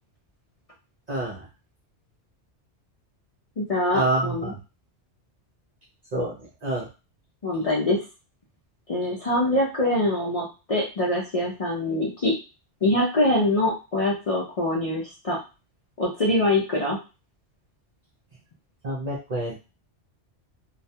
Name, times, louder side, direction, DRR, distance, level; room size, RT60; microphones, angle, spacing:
voice 1, 1.1-1.5 3.9-4.6 6.1-6.9 18.8-19.6, right 2 dB, 50° right, -4 dB, 0.5 m, -27 dB
voice 2, 3.6-4.5 7.4-8.0 8.9-12.3 12.8-15.4 16.0-17.0, left 1 dB, 45° left, -4 dB, 0.5 m, -24 dB
2.3 x 2.2 x 2.7 m, 0.31 s
omnidirectional pair, 1.2 m